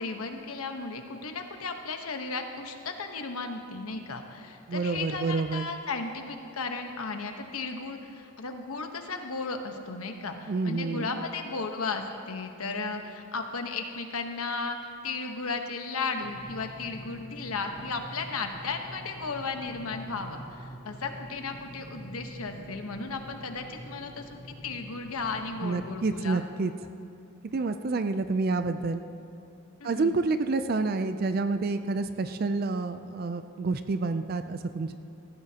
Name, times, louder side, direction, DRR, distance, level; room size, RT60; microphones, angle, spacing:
voice 1, 0.0-14.8 15.0-26.4 29.8-30.2, left 4 dB, 90° left, 5 dB, 1.1 m, -35 dB
voice 2, 4.7-5.7 10.5-11.2 25.6-26.7 27.5-29.0 29.8-34.9, right 3 dB, 45° right, 9 dB, 0.4 m, -28 dB
sound 1, 16.2-26.1, right 1 dB, 30° left, 2.0 m, -46 dB
18.0 x 14.5 x 2.9 m, 2.7 s
head